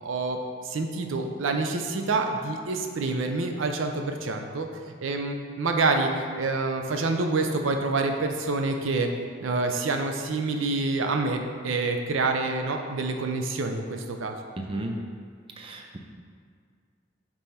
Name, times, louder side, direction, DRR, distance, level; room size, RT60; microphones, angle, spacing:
voice 1, 0.0-4.7 5.0-6.1 6.4-9.1 9.4-11.4 11.6-14.4, right 3 dB, 90° right, 5 dB, 0.5 m, -27 dB
voice 2, 14.6-14.9 15.6-16.0, right 2 dB, 30° right, 2 dB, 0.4 m, -34 dB
5.4 x 4.5 x 4.2 m, 2.1 s
head